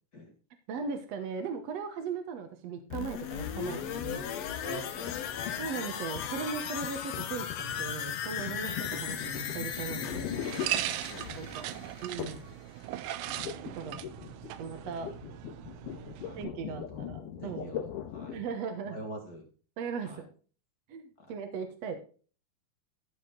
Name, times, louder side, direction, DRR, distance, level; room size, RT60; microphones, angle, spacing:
voice 1, 0.7-4.3 5.6-10.3 11.3-11.7 12.0-12.4 13.8-14.0 14.6-15.1 16.4-17.8 18.3-19.0 19.8-20.2 20.9-22.0, right 6 dB, 60° right, 6 dB, 2.1 m, -38 dB
sound 1, 2.9-12.6 12.9-13.0, left 9 dB, 65° left, 1.9 m, -37 dB
voice 2, 4.6-5.6 10.8-12.2 16.2-16.4 16.7-17.1 17.4-17.9 18.1-18.4 18.8-19.5 20.0-20.2 21.2-21.3, equal, 35° left, 2 dB, 1.8 m, -45 dB
sound 2, 5.1-11.4 12.2-12.6 12.8-18.5, left 9 dB, 85° left, 2.8 m, -41 dB
sound 3, 8.5-16.4, right 14 dB, 80° right, 2.1 m, -39 dB
14.5 x 5.2 x 3.8 m, 0.38 s
omnidirectional pair, 3.7 m